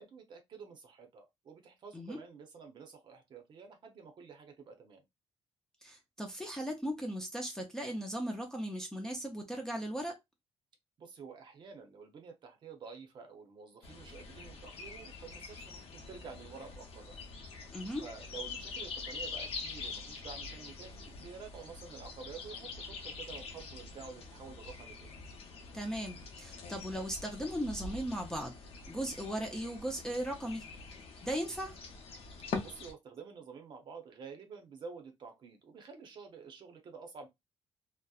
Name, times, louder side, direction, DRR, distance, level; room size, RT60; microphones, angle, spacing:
voice 1, 0.0-5.0 11.0-17.2 18.0-25.1 32.6-37.3, right 5 dB, 45° right, 0.6 m, -50 dB
voice 2, 5.8-10.2 17.7-18.0 25.7-28.5 28.9-30.6 31.2-31.7, equal, 5° left, 0.4 m, -37 dB
sound 1, 13.8-32.9, left 4 dB, 60° left, 0.7 m, -45 dB
2.7 x 2.1 x 2.3 m
cardioid pair, 175°, 11 cm